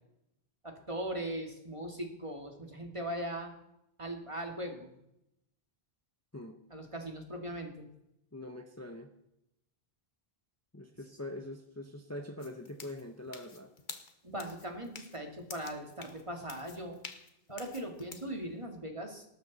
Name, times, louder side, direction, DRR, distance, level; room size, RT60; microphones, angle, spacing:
voice 1, 0.6-3.5 4.0-4.9 6.7-7.9 14.2-17.0 17.5-19.2, right 1 dB, 30° right, 3 dB, 2.3 m, -39 dB
voice 2, 8.3-9.1 10.7-13.7, left 1 dB, 15° left, 5 dB, 1.0 m, -43 dB
sound 1, 12.4-18.3, left 4 dB, 50° left, 1.3 m, -49 dB
19.0 x 12.5 x 4.2 m, 0.83 s
omnidirectional pair, 1.0 m